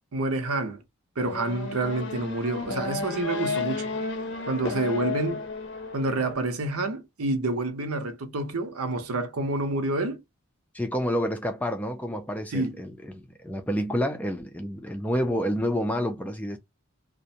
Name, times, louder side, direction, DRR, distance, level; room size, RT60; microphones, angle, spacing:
voice 1, 0.1-0.8 1.2-4.0 4.5-5.4 5.9-10.2 12.5-12.7, right 2 dB, 85° right, 0.7 m, -28 dB
Race car auto racing / Accelerating revving vroom, 1.2-6.3, left 4 dB, 55° left, 0.6 m, -32 dB
voice 2, 10.7-16.6, equal, 5° left, 0.3 m, -29 dB
2.4 x 2.1 x 2.7 m
head